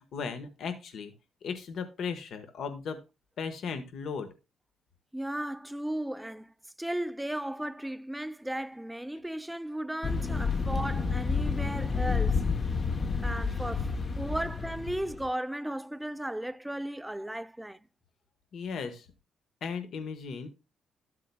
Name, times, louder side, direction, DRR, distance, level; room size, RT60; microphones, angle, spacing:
voice 1, 0.1-1.1 1.4-3.0 3.4-4.3 18.5-19.1 19.6-20.5, left 5 dB, 65° left, 1.3 m, -36 dB
voice 2, 5.1-6.5 6.8-12.5 13.2-17.8, right 1 dB, 5° right, 0.4 m, -35 dB
sound 1, 10.0-15.3, left 4 dB, 35° left, 0.9 m, -30 dB
12.5 x 7.5 x 2.3 m
cardioid pair, 90°, 0 cm